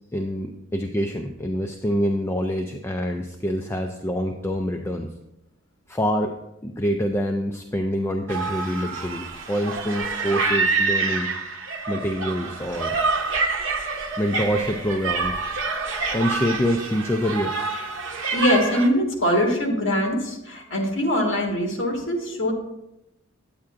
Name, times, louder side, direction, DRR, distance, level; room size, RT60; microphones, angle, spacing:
voice 1, 0.1-5.1 5.9-11.3 11.9-13.0 14.2-15.4 16.1-17.6, equal, 10° left, 4 dB, 0.3 m, -26 dB
sound 1, 8.3-18.9, right 4 dB, 70° right, 0.8 m, -27 dB
voice 2, 18.3-22.5, equal, 65° left, 1 dB, 1.7 m, -22 dB
9.4 x 8.5 x 2.5 m, 0.89 s
head